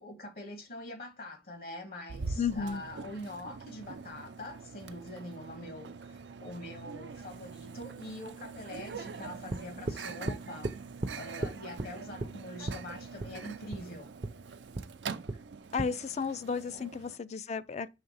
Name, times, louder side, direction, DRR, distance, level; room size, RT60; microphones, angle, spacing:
voice 1, 0.0-10.7 11.1-14.1 16.7-16.9, left 1 dB, 60° left, 1.4 m, -44 dB
Microwave oven, 2.1-17.2, right 5 dB, 85° right, 0.5 m, -44 dB
voice 2, 2.4-2.8 15.7-17.9, left 5 dB, 40° left, 0.4 m, -33 dB
sound 1, 9.5-10.0 10.3-10.8 11.0-11.1 11.4-11.9 12.2-12.3 12.7-12.8 13.2-13.3 13.7-13.8 14.2-14.3 14.7-14.9 15.3-15.4 15.8-15.9, right 2 dB, 35° right, 0.5 m, -34 dB
5.7 x 3.4 x 5.5 m
head